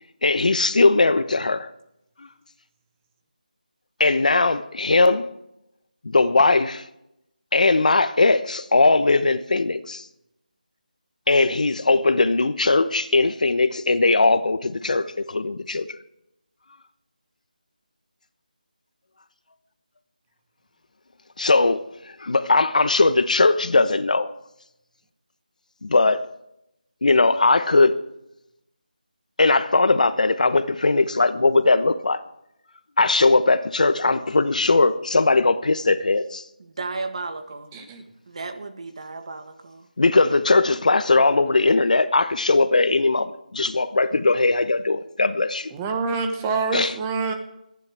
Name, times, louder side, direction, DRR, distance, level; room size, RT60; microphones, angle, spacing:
voice 1, 0.2-1.7 2.2-2.3 4.0-5.3 6.0-6.9 7.5-10.1 11.3-16.0 21.4-24.3 25.8-26.3 27.0-28.0 29.4-32.2 33.0-36.5 40.0-45.7 46.7-46.9, left 3 dB, 60° left, 1.1 m, -19 dB
voice 2, 36.6-37.8 38.3-39.9, right 3 dB, 45° right, 1.5 m, -34 dB
voice 3, 37.7-38.0 45.7-47.3, right 4 dB, 15° right, 1.1 m, -26 dB
28.0 x 10.5 x 3.6 m
figure-of-eight pair, 170°, 5 cm